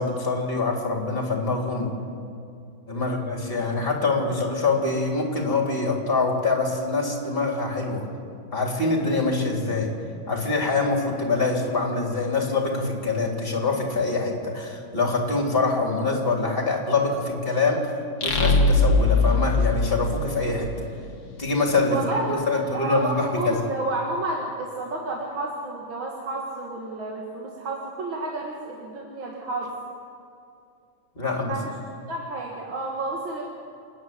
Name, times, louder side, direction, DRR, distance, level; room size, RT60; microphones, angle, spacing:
voice 1, 0.0-1.9 2.9-8.0 8.5-9.9 10.3-17.9 18.2-20.7 21.4-22.0 22.5-23.5 31.1-31.5, left 3 dB, 25° left, 0 dB, 3.5 m, -24 dB
sound 1, 18.2-20.8, left 3 dB, 50° left, 2.2 m, -21 dB
voice 2, 21.9-29.7 31.2-31.6 32.1-33.4, right 2 dB, 65° right, -2 dB, 2.6 m, -30 dB
28.5 x 9.7 x 9.5 m, 2.5 s
omnidirectional pair, 2.3 m